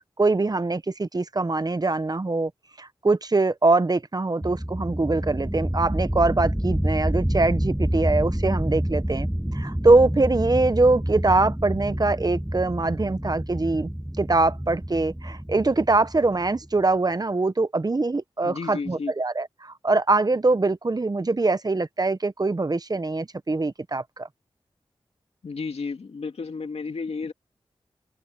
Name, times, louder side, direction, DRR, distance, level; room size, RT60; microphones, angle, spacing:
voice 1, 0.2-2.5 2.8-9.3 9.5-13.9 14.2-24.3, right 3 dB, 40° right, 1.0 m, -23 dB
sound 1, 4.4-16.8, equal, 5° right, 0.8 m, -28 dB
voice 2, 18.4-19.1 25.4-27.3, left 4 dB, 80° left, 2.3 m, -32 dB
cardioid pair, 45°, 10 cm